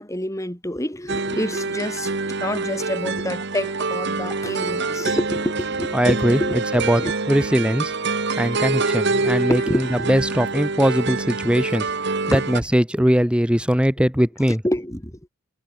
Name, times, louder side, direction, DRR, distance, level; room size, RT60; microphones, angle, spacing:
voice 1, 0.0-6.6 6.9-7.1 8.9-9.0 9.2-10.1 12.3-12.6 13.0-13.1 14.6-15.2, left 1 dB, 15° left, 3.8 m, -28 dB
sound 1, 1.1-12.6, right 3 dB, 55° right, 1.6 m, -26 dB
voice 2, 5.9-6.4 6.7-7.0 7.3-7.9 8.4-11.8 12.3-14.6, equal, 5° right, 1.6 m, -20 dB
head